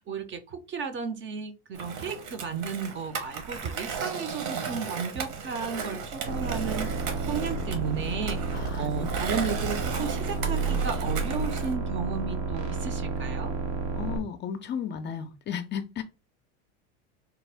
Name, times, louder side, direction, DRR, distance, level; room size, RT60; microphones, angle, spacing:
voice 1, 0.0-13.5, right 5 dB, 35° right, 0.6 m, -34 dB
Skateboard, 1.7-11.7, right 5 dB, 60° right, 1.1 m, -36 dB
sound 1, 6.3-14.2, right 3 dB, 90° right, 1.1 m, -31 dB
voice 2, 8.5-9.1 14.0-16.0, left 8 dB, 30° left, 0.4 m, -34 dB
3.4 x 2.1 x 3.4 m
supercardioid pair, 100°, 34 cm